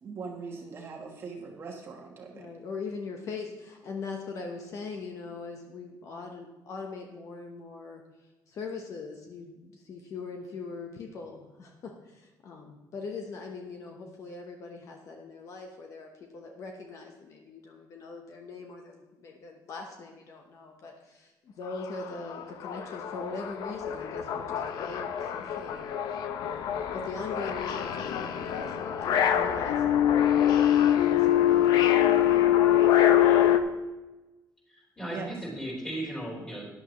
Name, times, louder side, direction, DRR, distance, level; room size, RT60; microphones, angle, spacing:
voice 1, 0.0-2.5 35.0-35.4, right 5 dB, 35° right, 1 dB, 1.3 m, -40 dB
voice 2, 2.3-8.0 8.5-25.9 26.4-30.8 31.0-31.9, left 4 dB, 45° left, 2 dB, 1.1 m, -41 dB
sound 1, 21.7-21.8 22.1-33.6, left 11 dB, 65° left, 0.8 m, -24 dB
voice 3, 34.7-36.7, right 1 dB, 10° left, -5 dB, 3.9 m, -36 dB
14.0 x 10.5 x 3.1 m, 1.1 s
cardioid pair, 180°, 7 cm